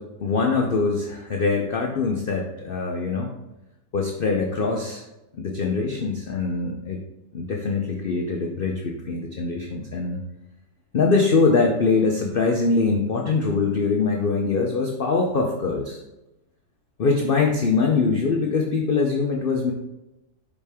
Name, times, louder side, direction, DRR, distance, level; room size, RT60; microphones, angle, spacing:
voice 1, 0.0-3.3 3.9-5.0 5.3-7.0 7.3-10.2 10.9-16.0 17.0-19.7, left 4 dB, 75° left, 1 dB, 0.5 m, -23 dB
5.4 x 5.0 x 3.5 m, 0.94 s
omnidirectional pair, 1.8 m